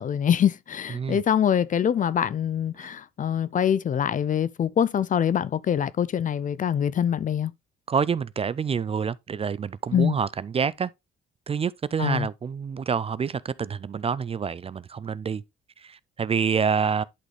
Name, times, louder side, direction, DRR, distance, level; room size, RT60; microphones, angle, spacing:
voice 1, 0.0-7.5 9.9-10.2 12.0-12.3, left 9 dB, 40° left, 0.4 m, -24 dB
voice 2, 7.9-10.9 11.5-15.4 15.8-17.0, right 6 dB, 30° right, 0.4 m, -27 dB
11.0 x 4.0 x 3.1 m
cardioid pair, 90°, 20 cm